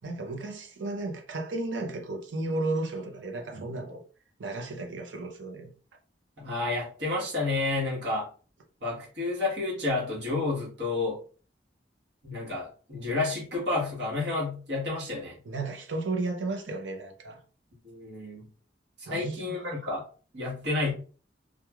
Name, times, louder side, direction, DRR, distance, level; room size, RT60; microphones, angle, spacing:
voice 1, 0.0-4.0 4.4-5.7 15.5-17.4 19.1-19.7, right 2 dB, 90° right, 0.7 m, -34 dB
voice 2, 6.4-8.3 8.8-11.2 12.2-15.4 17.8-18.5 19.0-20.0 20.3-20.9, left 3 dB, 65° right, 1.2 m, -30 dB
3.0 x 2.3 x 2.3 m
head